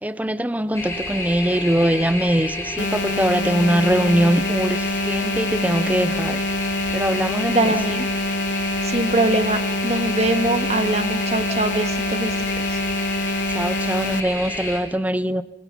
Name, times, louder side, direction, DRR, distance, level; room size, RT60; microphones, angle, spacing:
voice 1, 0.0-6.4 6.9-8.1 13.5-15.4, right 1 dB, 10° right, 0.7 m, -22 dB
sound 1, 0.7-14.8, left 2 dB, 15° left, 5.7 m, -30 dB
sound 2, 2.8-14.2, left 1 dB, 75° left, 1.0 m, -26 dB
voice 2, 7.5-8.0 8.8-12.8, right 2 dB, 35° right, 2.0 m, -23 dB
26.5 x 22.0 x 5.5 m
head